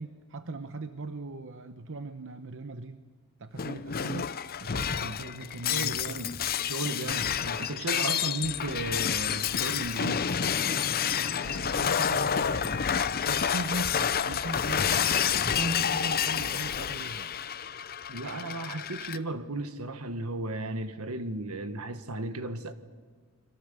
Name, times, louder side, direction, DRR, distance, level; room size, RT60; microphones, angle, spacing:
voice 1, 0.0-3.0 3.4-6.2 7.0-7.2 8.1-8.2 11.2-15.1 15.4-17.3, right 2 dB, 60° right, 0.9 m, -39 dB
Shatter, 3.6-19.2, left 8 dB, 45° left, 0.6 m, -29 dB
voice 2, 5.7-6.4 6.6-10.3 18.1-22.7, right 2 dB, 80° right, 1.5 m, -35 dB
29.5 x 23.0 x 6.8 m
head